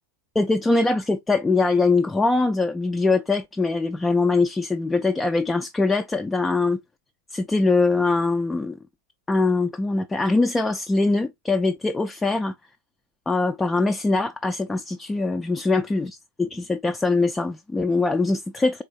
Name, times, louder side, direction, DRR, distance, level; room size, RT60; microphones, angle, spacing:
voice 1, 0.4-6.8 7.3-8.8 9.3-12.5 13.3-18.8, left 3 dB, 10° left, 0.3 m, -22 dB
4.0 x 3.4 x 3.0 m
figure-of-eight pair, 90°, 0 cm